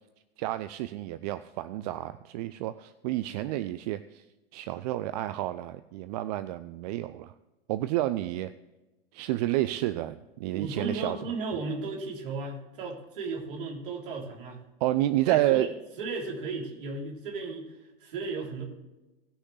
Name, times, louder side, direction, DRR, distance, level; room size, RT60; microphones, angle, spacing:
voice 1, 0.4-4.2 4.5-7.3 7.7-8.5 9.1-11.3 14.8-15.7, right 15 dB, 45° right, 13 dB, 0.5 m, -30 dB
voice 2, 10.5-14.6 15.3-15.7 16.0-18.6, right 3 dB, 60° right, -1 dB, 3.7 m, -35 dB
19.0 x 6.5 x 3.3 m, 1.0 s
figure-of-eight pair, 90°, 29 cm